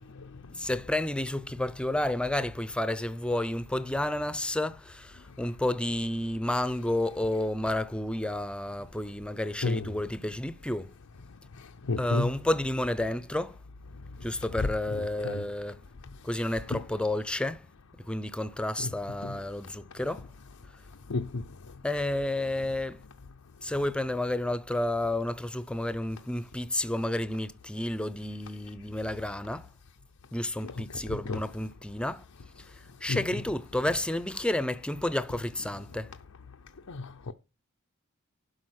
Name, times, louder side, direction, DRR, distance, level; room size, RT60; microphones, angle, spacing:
voice 1, 0.5-10.9 12.0-13.6 14.2-15.8 16.2-17.6 18.1-20.3 21.8-23.0 23.6-29.7 30.3-32.2 33.0-36.1, left 1 dB, 5° left, 0.6 m, -31 dB
voice 2, 9.6-9.9 11.9-12.3 15.2-15.4 16.7-16.8 18.8-18.9 19.2-19.4 21.1-21.4 30.6-30.7 31.1-31.4 33.1-33.2 36.9-37.3, left 3 dB, 90° left, 0.7 m, -31 dB
12.0 x 5.1 x 6.4 m
head